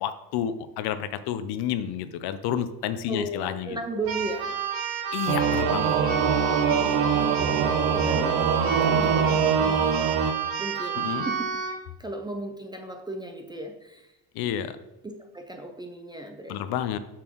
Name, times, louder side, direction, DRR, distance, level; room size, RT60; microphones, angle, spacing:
voice 1, 0.0-3.8 5.1-6.0 11.0-11.3 14.3-14.8 16.5-17.0, left 10 dB, 55° left, 12 dB, 0.7 m, -30 dB
voice 2, 3.1-4.7 6.8-11.5 12.0-14.1 15.0-16.8, right 2 dB, 10° right, 4 dB, 0.4 m, -36 dB
Keyboard (musical), 4.0-11.8, right 7 dB, 80° right, 1.6 m, -30 dB
Singing / Musical instrument, 5.3-10.3, right 6 dB, 40° right, 0.7 m, -23 dB
7.2 x 6.0 x 3.0 m, 0.93 s
supercardioid pair, 120°, 46 cm